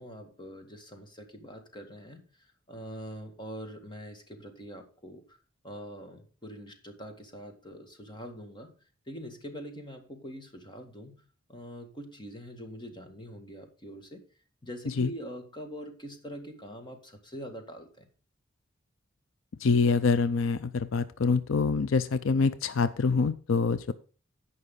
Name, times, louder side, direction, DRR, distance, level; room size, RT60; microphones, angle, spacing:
voice 1, 0.0-2.2 2.7-5.4 5.6-8.8 9.1-11.2 11.5-14.2 14.6-18.1, equal, 25° left, 5 dB, 1.9 m, -44 dB
voice 2, 19.6-23.9, left 4 dB, 75° left, 14 dB, 0.5 m, -25 dB
16.5 x 5.5 x 3.8 m, 0.36 s
head